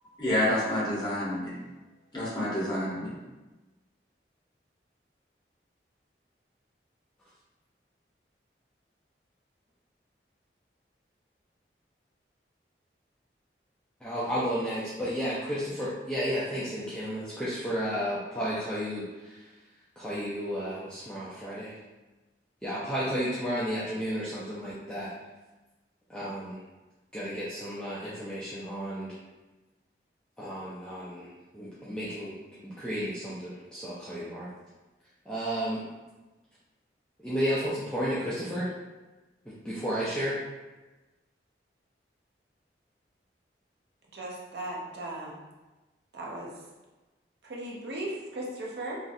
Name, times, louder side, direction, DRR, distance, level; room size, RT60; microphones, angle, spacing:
voice 1, 0.0-1.5 2.1-3.1, left 1 dB, 25° left, -8 dB, 0.9 m, -28 dB
voice 2, 14.0-19.5 20.0-21.7 22.6-25.1 26.1-26.6 27.1-29.2 30.4-32.4 32.6-34.5 35.3-35.9 37.2-38.7 39.6-40.4, equal, 5° left, -10 dB, 0.4 m, -32 dB
voice 3, 44.1-45.4 46.1-46.5 47.4-49.0, right 1 dB, 70° right, -3 dB, 0.6 m, -37 dB
3.0 x 2.4 x 2.6 m, 1.1 s
head